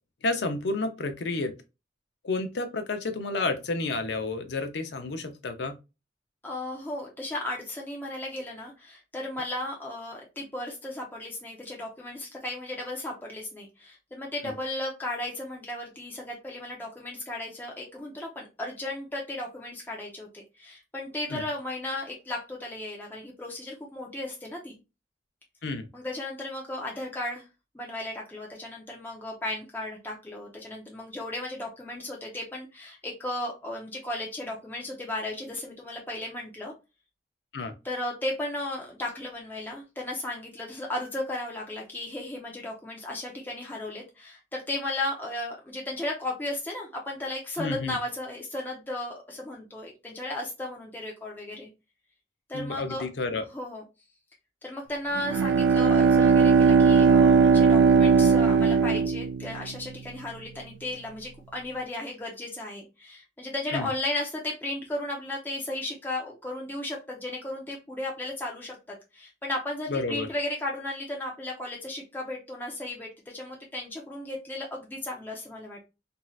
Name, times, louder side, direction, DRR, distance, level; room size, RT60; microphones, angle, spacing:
voice 1, 0.2-1.5 2.2-5.7 14.4-14.5 21.3-21.4 25.6-25.9 37.5-37.7 47.6-48.0 52.5-53.4 63.7-63.9 69.9-70.3, left 3 dB, 65° left, 7 dB, 0.5 m, -30 dB
voice 2, 6.4-24.8 25.9-27.4 27.7-36.7 37.8-51.7 52.5-53.0 53.4-53.8 54.6-75.9, left 1 dB, 10° left, -2 dB, 0.6 m, -35 dB
Bowed string instrument, 55.2-59.9, right 5 dB, 75° right, 0.3 m, -19 dB
3.1 x 2.7 x 2.3 m, 0.27 s
head